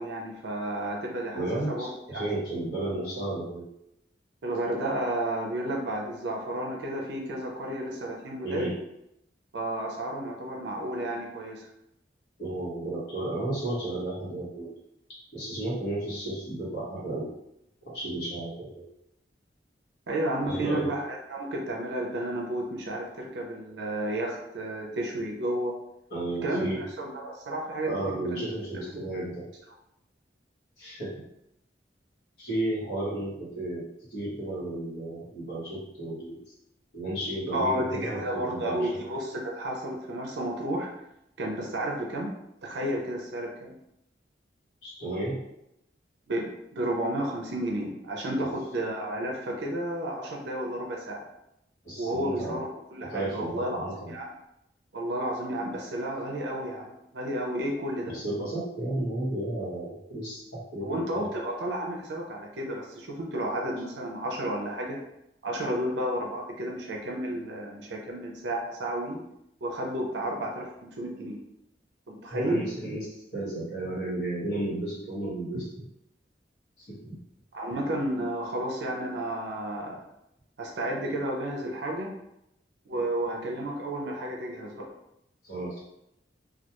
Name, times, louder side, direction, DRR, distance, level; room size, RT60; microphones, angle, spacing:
voice 1, 0.0-1.9 2.1-2.3 4.4-8.7 9.5-11.7 20.1-25.7 26.4-26.7 27.0-27.9 28.2-28.4 37.5-40.9 41.4-42.4 42.6-43.8 46.3-51.2 52.0-54.3 54.9-58.2 60.8-65.0 65.4-69.2 69.6-70.7 71.0-71.4 72.2-72.6 77.5-80.0 80.6-82.2 82.9-84.9, right 1 dB, 70° right, -1 dB, 0.5 m, -32 dB
voice 2, 1.3-3.6 8.4-8.7 12.4-14.7 15.3-17.3 17.9-18.8 20.5-20.9 26.1-26.8 27.8-29.4 30.8-31.2 32.4-36.4 36.9-39.0 44.8-45.4 48.4-48.5 51.8-52.6 53.0-54.1 58.1-61.3 72.3-73.1 73.3-75.7 76.8-77.2 85.4-85.8, right 1 dB, 65° left, -7 dB, 1.0 m, -33 dB
2.3 x 2.2 x 2.8 m, 0.81 s
head